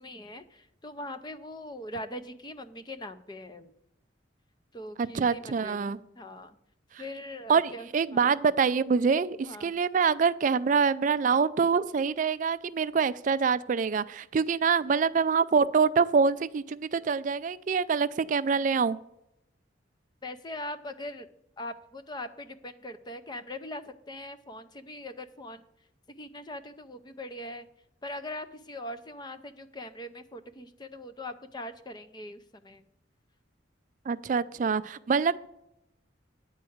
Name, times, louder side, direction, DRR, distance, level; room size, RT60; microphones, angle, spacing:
voice 1, 0.0-3.7 4.7-6.6 7.0-8.4 9.4-9.7 20.2-21.3 21.6-25.7 26.1-27.7 28.0-32.8, left 1 dB, 20° left, 9 dB, 0.5 m, -41 dB
voice 2, 5.0-6.0 7.5-19.0 34.1-35.4, right 5 dB, 40° right, 15 dB, 0.3 m, -25 dB
9.5 x 4.7 x 7.8 m, 0.83 s
head